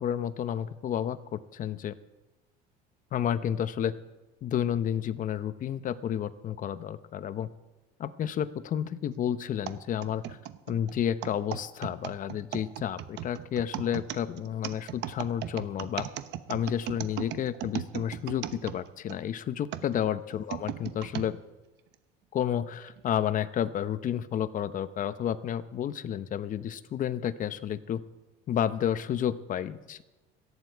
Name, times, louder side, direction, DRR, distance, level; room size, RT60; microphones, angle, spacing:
voice 1, 0.0-2.0 3.1-3.9 4.4-7.5 8.0-10.4 10.7-16.1 16.5-21.4 22.3-28.0 28.5-30.0, left 9 dB, 45° left, 13 dB, 0.9 m, -31 dB
sound 1, 9.7-19.2 19.7-21.3 21.9-22.0 22.9-23.1, right 12 dB, 65° right, 1.0 m, -37 dB
18.0 x 14.5 x 4.7 m, 1.1 s
cardioid pair, 120°, 19 cm